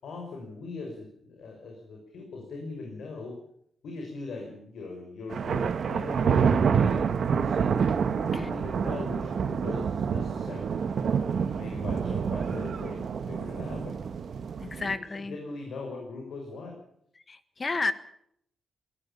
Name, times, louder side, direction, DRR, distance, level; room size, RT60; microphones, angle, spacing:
voice 1, 0.0-3.4 3.8-7.8 8.1-10.7 11.2-14.0 14.8-14.9 15.3-16.8, left 3 dB, 75° left, 2 dB, 5.8 m, -40 dB
sound 1, 5.3-14.9, right 6 dB, 55° right, 1.5 m, -27 dB
voice 2, 14.6-15.4 17.3-17.9, left 3 dB, 30° left, 12 dB, 1.5 m, -31 dB
22.0 x 18.0 x 7.1 m, 0.69 s
wide cardioid pair, 155°, 0 cm